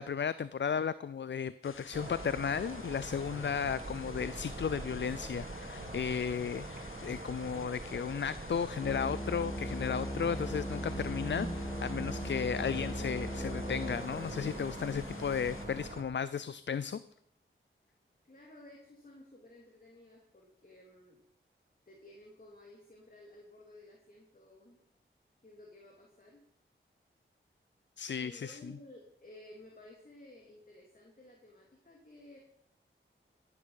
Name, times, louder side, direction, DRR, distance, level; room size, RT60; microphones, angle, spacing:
voice 1, 0.0-17.0 28.0-28.6, left 7 dB, 60° left, 16 dB, 0.5 m, -34 dB
sound 1, 1.6-15.7, left 5 dB, 75° left, 1.1 m, -53 dB
sound 2, 1.9-16.0, right 2 dB, 40° right, 3.1 m, -43 dB
sound 3, 8.8-15.9, equal, 15° left, 1.6 m, -40 dB
voice 2, 18.2-21.2 21.9-24.8 25.4-26.4 28.2-32.4, left 1 dB, 45° left, -1 dB, 3.0 m, -55 dB
14.5 x 9.8 x 5.8 m, 0.73 s
cardioid pair, 45°, 21 cm